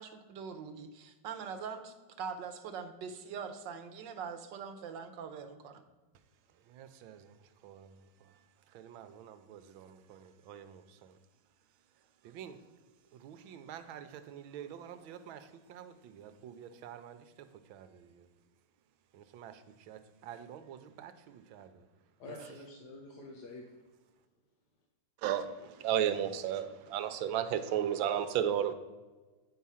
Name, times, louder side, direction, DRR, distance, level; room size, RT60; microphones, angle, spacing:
voice 1, 0.0-5.8, right 6 dB, 65° right, 7 dB, 1.4 m, -43 dB
voice 2, 6.7-7.2 7.6-7.9 8.7-10.2 10.5-10.8 12.3-12.6 13.2-15.4 15.7-17.2 17.7-17.9 19.3-19.5 19.9-21.1 21.5-21.7 25.2-25.5 25.8-28.7, right 10 dB, 85° right, 10 dB, 1.5 m, -36 dB
voice 3, 22.2-23.8, left 2 dB, 60° left, 1 dB, 1.4 m, -47 dB
8.9 x 4.8 x 5.6 m, 1.3 s
omnidirectional pair, 2.2 m